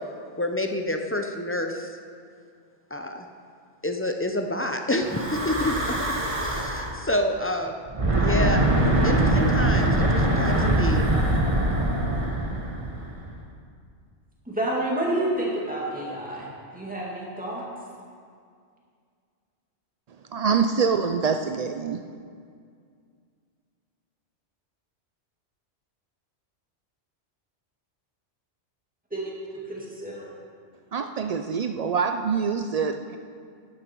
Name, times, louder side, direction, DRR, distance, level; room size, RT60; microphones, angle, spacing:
voice 1, 0.4-1.9 2.9-3.3 3.8-7.8 8.2-8.7 9.0-11.1, left 1 dB, 15° left, 4 dB, 0.4 m, -28 dB
Breathing / Wind, 5.0-7.0 7.9-13.2, right 1 dB, 30° right, 1.3 m, -23 dB
voice 2, 14.5-17.6 29.1-30.2, right 1 dB, 5° right, -5 dB, 2.2 m, -29 dB
voice 3, 20.3-22.0 30.9-33.2, right 6 dB, 75° right, 7 dB, 0.3 m, -25 dB
12.0 x 11.0 x 4.5 m, 2.2 s
omnidirectional pair, 1.2 m